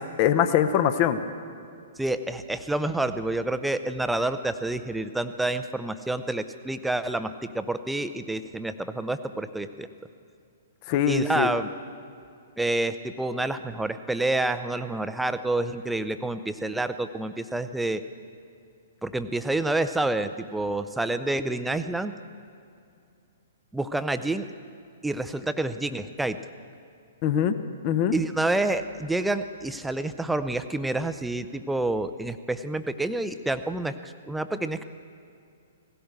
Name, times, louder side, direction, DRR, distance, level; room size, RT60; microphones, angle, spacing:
voice 1, 0.2-1.2 10.9-11.5 27.2-27.5 27.8-28.1, left 9 dB, 35° left, 10 dB, 0.8 m, -22 dB
voice 2, 2.0-9.9 11.1-11.7 12.6-18.0 19.0-22.2 23.7-24.5 25.0-26.4 28.1-34.8, right 2 dB, 5° right, 10 dB, 0.5 m, -28 dB
17.5 x 16.0 x 4.5 m, 2.5 s
figure-of-eight pair, 115°, 0 cm